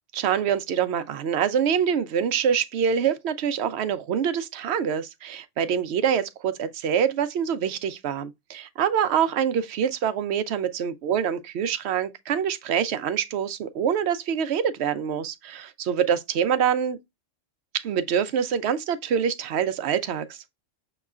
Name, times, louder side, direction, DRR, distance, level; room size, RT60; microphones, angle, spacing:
voice 1, 0.2-17.0 17.8-20.4, right 8 dB, 65° right, 0.8 m, -25 dB
6.5 x 3.0 x 2.4 m
omnidirectional pair, 1.3 m